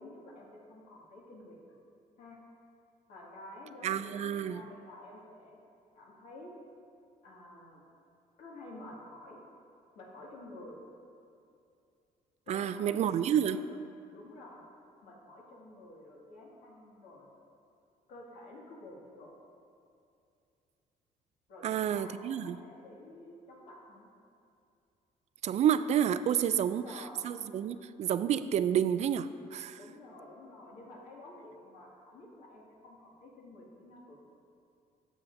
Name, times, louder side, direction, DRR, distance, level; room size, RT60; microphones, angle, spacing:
voice 1, 0.0-1.8 2.2-2.4 3.1-5.6 5.9-6.5 7.2-7.8 8.4-9.4 10.0-10.8 12.5-13.1 13.4-13.7 14.1-14.6 15.0-17.3 18.1-19.3 21.5-24.1 26.6-27.2 29.7-34.2, left 1 dB, 80° left, -4 dB, 2.1 m, -50 dB
voice 2, 3.8-4.6 12.5-13.6 21.6-22.6 25.4-26.9 27.2-29.8, right 9 dB, 50° right, 13 dB, 0.4 m, -29 dB
13.5 x 7.3 x 2.7 m, 2.5 s
cardioid pair, 110°, 14 cm